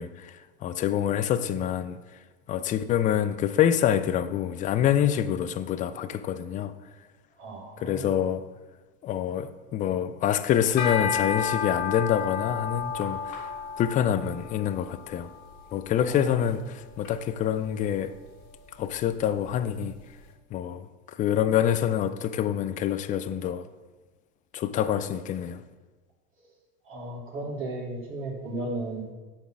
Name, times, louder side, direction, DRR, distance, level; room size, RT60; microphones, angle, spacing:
voice 1, 0.0-2.0 2.5-6.7 7.8-8.5 9.0-13.5 13.8-15.3 15.7-18.1 18.8-20.0 20.5-20.9 21.1-23.7 24.5-25.6, left 10 dB, 25° left, 0.3 m, -26 dB
voice 2, 7.4-8.1 16.1-16.2 26.9-29.1, right 2 dB, 35° right, 2.5 m, -35 dB
sound 1, 10.6-20.0, left 6 dB, 55° left, 1.8 m, -34 dB
8.2 x 4.4 x 5.9 m
supercardioid pair, 115°, 34 cm